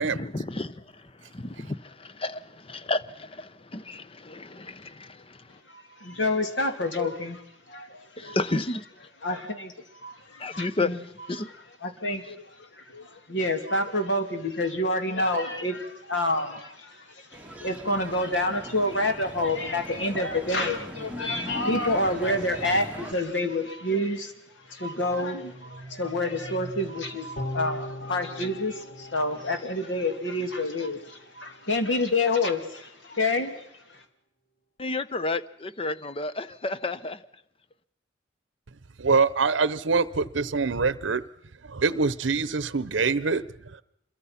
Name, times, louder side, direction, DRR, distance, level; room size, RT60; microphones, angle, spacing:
voice 1, 0.0-5.6 8.2-8.9 10.4-11.5 34.8-37.2, left 2 dB, 30° left, 0.8 m, -32 dB
voice 2, 5.7-8.4 9.2-9.7 10.0-11.0 11.8-24.3 24.7-33.6 33.9-34.0, left 2 dB, 75° left, 2.6 m, -28 dB
sound 1, 17.3-23.1, equal, 10° right, 2.0 m, -40 dB
sound 2, 24.6-28.6, right 2 dB, 25° right, 6.1 m, -46 dB
sound 3, 27.4-30.7 31.1-31.2, left 1 dB, 50° left, 2.1 m, -39 dB
voice 3, 39.0-41.2 41.7-43.4, right 4 dB, 75° right, 0.8 m, -24 dB
26.5 x 22.5 x 5.8 m
head